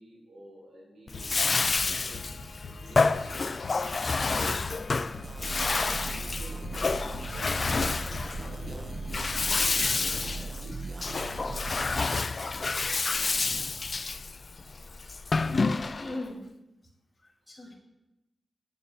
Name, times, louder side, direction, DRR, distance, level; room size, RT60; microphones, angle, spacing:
voice 1, 0.0-6.8 7.4-11.5 12.1-13.7, right 1 dB, 80° right, -6 dB, 4.3 m, -51 dB
sound 1, 1.1-10.4, left 3 dB, 60° left, 0.8 m, -43 dB
Bathtub (filling or washing), 1.1-16.2, left 4 dB, 40° left, 0.3 m, -29 dB
sound 2, 5.2-12.1, right 3 dB, 30° right, 0.4 m, -39 dB
voice 2, 14.7-15.5 16.0-16.4 17.2-17.8, left 2 dB, 20° left, -1 dB, 2.4 m, -41 dB
7.4 x 7.0 x 6.7 m, 0.96 s
wide cardioid pair, 105°, 0 cm